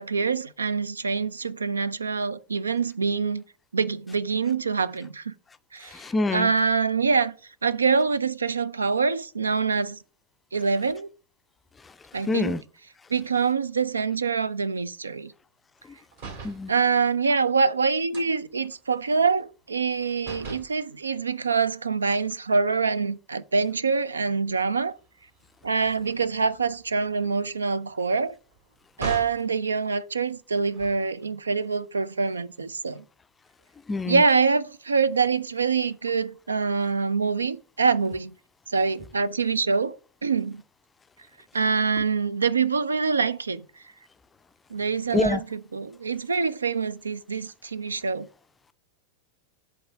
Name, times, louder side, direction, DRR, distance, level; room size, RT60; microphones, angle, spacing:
voice 1, 0.0-3.4 3.7-5.3 5.7-6.0 6.3-7.3 7.6-10.0 10.5-11.1 12.1-12.6 13.1-15.3 16.7-25.0 25.6-28.4 29.0-33.0 34.1-38.3 38.7-40.6 41.5-43.7 44.7-48.3, right 5 dB, 75° right, 0.3 m, -25 dB
voice 2, 6.0-6.5 12.3-12.6 16.4-16.7 33.9-34.2 45.1-45.4, left 3 dB, 15° left, 0.4 m, -25 dB
sound 1, 16.1-16.7 18.1-19.9 20.2-20.8 22.1-23.1 23.6-23.8 24.1-29.5 30.5-31.3, right 4 dB, 60° right, 1.9 m, -42 dB
7.8 x 3.5 x 5.2 m
figure-of-eight pair, 90°, 0 cm